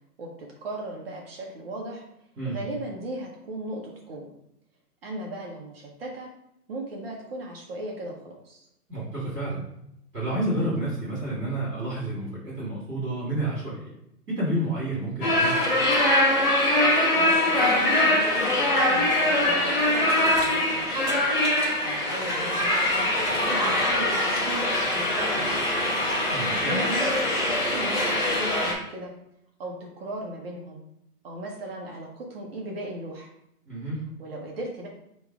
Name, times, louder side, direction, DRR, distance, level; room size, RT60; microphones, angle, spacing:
voice 1, 0.2-2.0 2.4-4.3 5.0-6.3 6.7-8.7 17.1-21.3 21.6-23.1 23.4-25.9 26.5-27.3 27.6-29.1 29.6-30.8 31.2-33.3 34.2-34.9, right 1 dB, 40° right, -1 dB, 0.8 m, -37 dB
voice 2, 8.9-9.7 10.1-13.9 14.3-15.6 26.3-26.8 33.6-34.0, right 1 dB, ahead, -35 dB, 0.4 m, -30 dB
sound 1, 15.2-28.7, left 1 dB, 30° left, 0.9 m, -23 dB
3.4 x 3.1 x 4.7 m, 0.78 s
hypercardioid pair, 150°, 47 cm